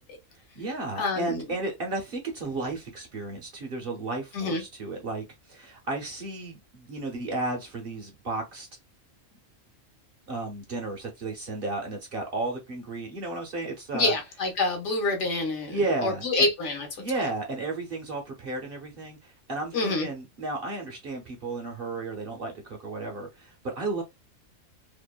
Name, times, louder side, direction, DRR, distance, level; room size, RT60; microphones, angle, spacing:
voice 1, 0.3-8.7 10.3-14.1 15.6-16.5 17.0-24.0, right 2 dB, 55° right, 0.7 m, -33 dB
voice 2, 1.0-1.4 4.3-4.6 13.9-17.0 19.7-20.1, left 2 dB, 65° left, 1.1 m, -27 dB
2.7 x 2.1 x 2.2 m
omnidirectional pair, 1.3 m